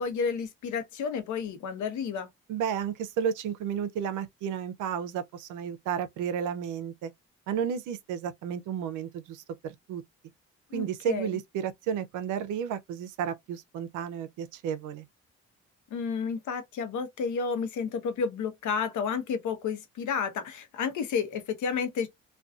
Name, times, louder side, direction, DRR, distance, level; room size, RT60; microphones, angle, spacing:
voice 1, 0.0-2.3 10.7-11.4 15.9-22.1, left 6 dB, 75° left, 0.8 m, -31 dB
voice 2, 2.5-7.1 7.5-10.0 10.7-15.1, right 8 dB, 90° right, 0.5 m, -32 dB
2.5 x 2.2 x 2.3 m
cardioid pair, 90°, 30 cm